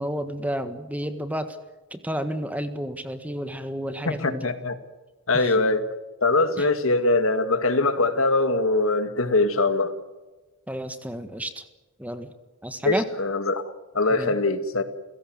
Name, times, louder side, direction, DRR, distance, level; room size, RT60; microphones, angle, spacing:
voice 1, 0.0-1.6 1.9-4.5 5.3-5.5 6.6-6.7 10.7-11.6 12.0-12.3 12.6-13.0 14.1-14.3, equal, 5° right, 1.5 m, -31 dB
voice 2, 4.1-4.8 5.3-5.8 6.2-9.9 12.8-13.6 13.9-14.8, left 2 dB, 75° left, 2.1 m, -22 dB
30.0 x 17.0 x 7.9 m
head